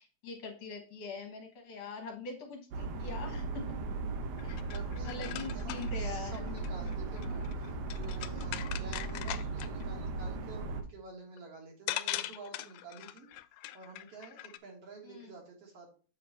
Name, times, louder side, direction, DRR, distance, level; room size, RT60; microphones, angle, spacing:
voice 1, 0.0-3.6 4.4-4.6 5.0-6.5 15.0-15.3, left 4 dB, 65° left, 2 dB, 2.2 m, -43 dB
sound 1, 2.7-10.8, right 3 dB, 80° right, 2.3 m, -37 dB
sound 2, 4.4-9.8 11.4-11.5 11.9-14.6, left 14 dB, 90° left, 2.0 m, -41 dB
voice 2, 4.7-13.3 13.7-15.9, right 3 dB, 55° right, 0 dB, 2.5 m, -49 dB
7.6 x 4.2 x 4.3 m, 0.38 s
omnidirectional pair, 3.3 m